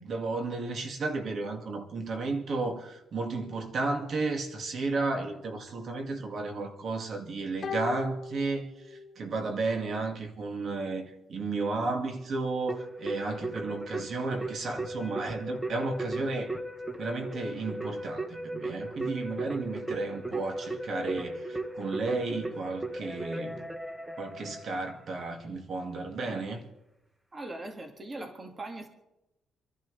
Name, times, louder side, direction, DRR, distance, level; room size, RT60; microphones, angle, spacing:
voice 1, 0.0-8.7 9.2-11.0 11.3-16.5 17.0-23.6 24.2-26.6, right 3 dB, 55° right, 2.3 m, -33 dB
sound 1, 7.6-9.3 9.6-9.7, left 5 dB, 55° left, 1.2 m, -38 dB
Keyboard (musical), 12.7-25.1, right 1 dB, 10° right, 1.2 m, -37 dB
voice 2, 27.3-28.9, right 2 dB, 25° right, 2.1 m, -40 dB
27.0 x 11.5 x 3.4 m
cardioid pair, 90°, 0 cm